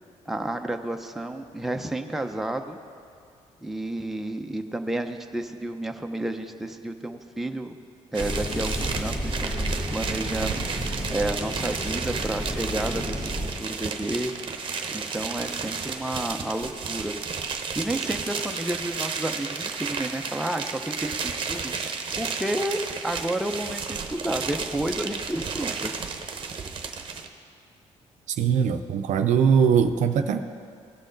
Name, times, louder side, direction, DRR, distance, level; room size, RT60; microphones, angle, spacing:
voice 1, 0.3-2.8 3.6-7.7 8.1-13.3 13.6-14.3 14.9-17.1 17.5-21.7 22.2-26.0, right 1 dB, ahead, 4 dB, 0.6 m, -31 dB
sound 1, 8.1-27.3, right 5 dB, 40° right, 0.8 m, -33 dB
sound 2, 8.2-13.5, equal, 35° left, 2.0 m, -31 dB
voice 2, 28.4-30.4, right 7 dB, 75° right, 8 dB, 0.5 m, -21 dB
17.5 x 6.3 x 3.9 m, 2.3 s
cardioid pair, 105°, 13 cm